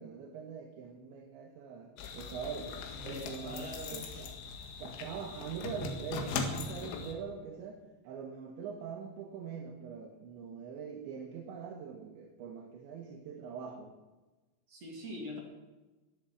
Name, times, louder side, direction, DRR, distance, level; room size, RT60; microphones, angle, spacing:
voice 1, 0.0-2.8 3.0-4.4 4.8-13.9, right 6 dB, 75° right, 2 dB, 3.6 m, -43 dB
sound 1, 2.0-7.1, left 4 dB, 85° left, 4.2 m, -40 dB
voice 2, 3.0-4.0 14.7-15.4, left 1 dB, 40° right, 0 dB, 2.8 m, -43 dB
22.0 x 8.4 x 7.4 m, 1.2 s
omnidirectional pair, 5.4 m